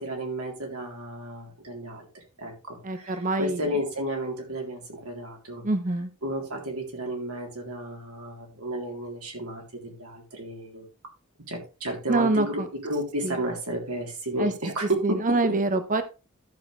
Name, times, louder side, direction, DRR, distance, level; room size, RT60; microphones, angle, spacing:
voice 1, 0.0-5.7 6.2-10.9 11.5-15.3, right 1 dB, 75° right, 0 dB, 3.4 m, -32 dB
voice 2, 2.8-3.7 5.6-6.1 12.1-12.7 13.2-13.4 14.4-14.5 15.0-16.0, right 2 dB, 35° right, 10 dB, 0.8 m, -25 dB
13.5 x 6.3 x 3.3 m, 0.31 s
head